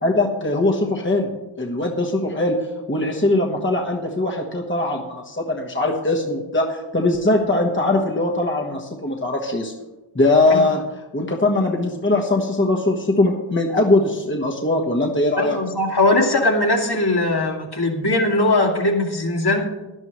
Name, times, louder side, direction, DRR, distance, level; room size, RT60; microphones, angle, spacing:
voice 1, 0.0-2.6 2.9-9.7 10.1-10.8 11.1-15.6, left 2 dB, 25° left, 0 dB, 1.3 m, -21 dB
voice 2, 15.4-19.7, left 2 dB, 50° left, 0 dB, 2.3 m, -20 dB
17.0 x 11.0 x 3.1 m, 1.1 s
wide cardioid pair, 80°, 50 cm